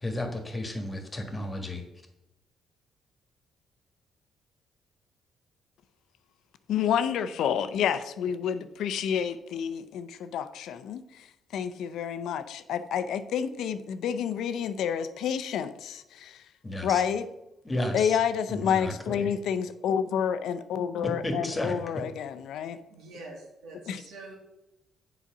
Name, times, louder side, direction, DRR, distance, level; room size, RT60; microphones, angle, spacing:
voice 1, 0.0-1.8 16.6-17.0 17.6-18.2 18.5-19.3 21.0-22.0, left 1 dB, 20° left, 4 dB, 1.5 m, -33 dB
voice 2, 6.7-11.3 11.5-16.4 16.8-17.3 17.9-22.8 23.9-24.0, left 8 dB, 80° left, 11 dB, 0.5 m, -29 dB
voice 3, 22.9-24.3, right 2 dB, 90° right, 0 dB, 2.1 m, -45 dB
7.4 x 4.0 x 5.9 m, 0.90 s
cardioid pair, 90°, 0 cm